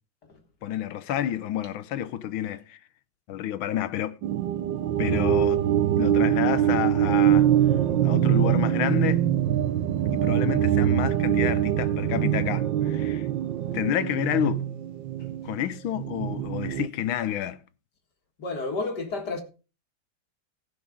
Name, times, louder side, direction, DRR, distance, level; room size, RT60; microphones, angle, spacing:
voice 1, 0.6-2.8 3.3-4.2 5.0-5.7 6.0-7.5 8.0-9.3 10.1-13.3 13.7-14.6 15.4-17.6, left 11 dB, 90° left, 1.6 m, -29 dB
sound 1, 4.2-16.9, right 11 dB, 70° right, 1.3 m, -24 dB
voice 2, 18.4-19.4, left 3 dB, 55° left, 2.4 m, -31 dB
15.0 x 6.1 x 5.2 m
omnidirectional pair, 2.2 m